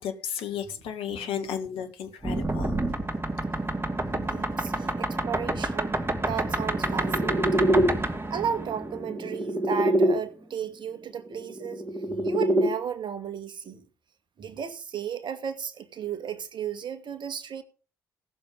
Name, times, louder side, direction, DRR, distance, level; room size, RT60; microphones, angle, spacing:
voice 1, 0.0-2.8, left 8 dB, 65° left, 2.1 m, -33 dB
voice 2, 1.1-1.5 4.1-5.9 6.2-7.7 8.3-11.8 12.1-13.8 14.4-17.6, right 8 dB, 50° right, 2.0 m, -34 dB
sound 1, 2.2-10.1 11.4-12.7, right 1 dB, 25° right, 2.6 m, -26 dB
17.5 x 7.2 x 5.5 m
hypercardioid pair, 45°, 10 cm